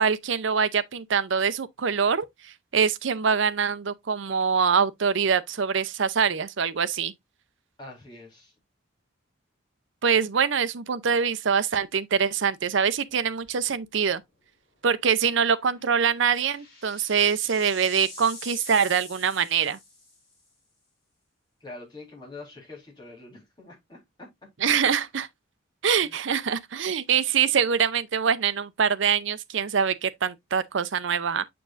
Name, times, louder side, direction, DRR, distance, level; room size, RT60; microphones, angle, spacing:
voice 1, 0.0-7.1 10.0-14.2 14.8-19.8 24.6-25.3 25.8-31.4, right 6 dB, 65° right, 0.6 m, -24 dB
voice 2, 7.8-8.5 21.6-24.3 26.0-26.2, left 2 dB, 20° left, 3.6 m, -44 dB
sound 1, 13.5-13.8 14.2-14.3 15.7-20.3, left 2 dB, 50° left, 4.7 m, -44 dB
6.9 x 6.1 x 2.5 m
head